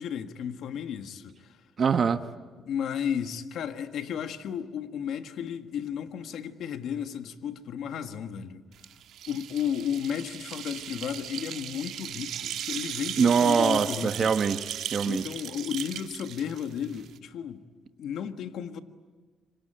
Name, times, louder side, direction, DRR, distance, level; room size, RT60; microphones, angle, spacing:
voice 1, 0.0-1.6 2.6-8.6 9.3-14.3 15.0-17.6 18.0-18.8, left 8 dB, 75° left, 1.6 m, -33 dB
voice 2, 1.8-2.2 13.2-15.2, right 6 dB, 50° right, 1.2 m, -23 dB
sound 1, 8.8-17.2, right 10 dB, 80° right, 1.5 m, -37 dB
27.0 x 24.0 x 9.0 m
cardioid pair, 90°, 0 cm